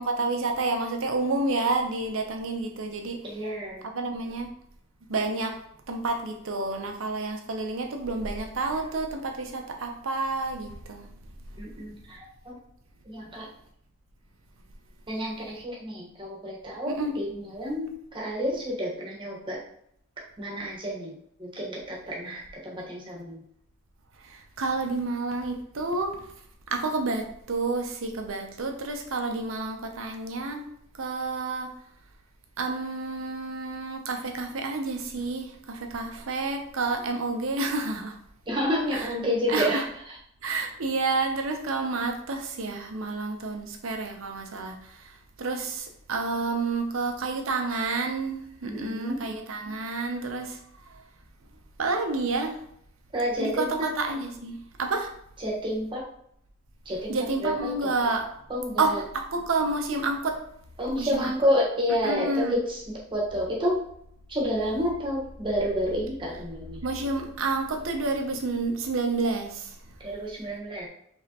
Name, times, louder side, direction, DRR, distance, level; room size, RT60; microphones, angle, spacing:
voice 1, 0.0-3.4 3.8-4.5 5.1-5.6 5.9-11.1 16.9-17.2 24.2-26.2 26.7-30.7 31.0-31.7 32.6-38.2 38.9-39.1 39.5-39.8 40.4-50.6 50.9-51.0 51.8-52.6 53.4-55.1 57.1-58.3 58.8-60.4 61.0-61.3 62.0-62.6 66.8-69.7, right 3 dB, 70° right, 4 dB, 0.7 m, -29 dB
voice 2, 3.2-3.8 11.6-12.6 13.1-13.5 15.1-19.6 20.4-21.1 21.4-23.4 38.5-39.8 48.6-49.2 53.1-53.9 55.4-56.0 56.8-57.9 58.5-59.0 60.8-63.8 64.3-66.8 70.0-70.9, equal, 25° right, -4 dB, 1.3 m, -29 dB
5.1 x 3.5 x 2.9 m, 0.70 s
head